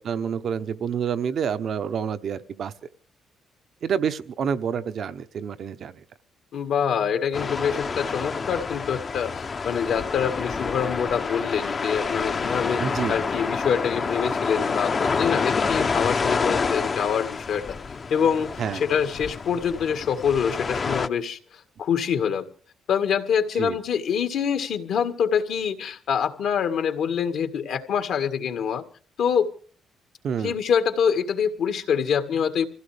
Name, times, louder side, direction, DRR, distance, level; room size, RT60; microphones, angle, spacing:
voice 1, 0.0-2.7 3.8-6.0 12.8-13.2 18.6-18.8 23.6-23.8 30.2-30.5, right 7 dB, 60° right, 12 dB, 0.9 m, -28 dB
voice 2, 6.5-12.8 13.1-17.6 18.1-22.5 22.9-28.8 29.2-29.5 30.4-32.7, left 7 dB, 75° left, 8 dB, 1.8 m, -25 dB
sound 1, 7.3-21.1, left 4 dB, 40° left, 0.8 m, -28 dB
25.0 x 16.0 x 3.5 m, 0.43 s
cardioid pair, 90°, 0 cm